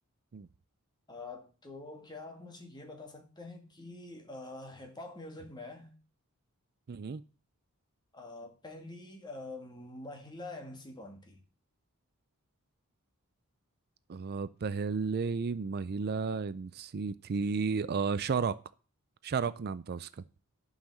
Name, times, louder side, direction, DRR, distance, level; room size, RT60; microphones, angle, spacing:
voice 1, 1.1-5.9 8.1-11.4, left 2 dB, 20° left, 2.0 m, -46 dB
voice 2, 6.9-7.2 14.1-18.6 19.2-20.1, right 5 dB, 45° right, 0.4 m, -33 dB
11.5 x 5.7 x 7.4 m
head